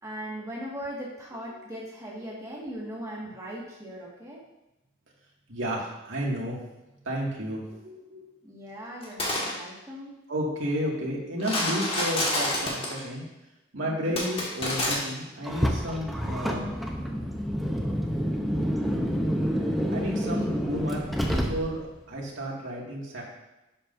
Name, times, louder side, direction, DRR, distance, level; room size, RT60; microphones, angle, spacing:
voice 1, 0.0-4.4 8.4-10.2 13.8-14.2 20.2-20.5, equal, 15° right, -4 dB, 1.8 m, -39 dB
voice 2, 5.5-6.6 7.0-8.3 10.3-13.2 13.7-16.7 19.9-23.2, equal, 80° right, -3 dB, 2.2 m, -32 dB
sound 1, 9.0-9.5 11.4-13.0 14.2-15.0, left 1 dB, 30° left, 1.8 m, -28 dB
Car, 15.4-22.0, equal, ahead, 0.7 m, -28 dB
11.0 x 7.4 x 2.7 m, 0.97 s
head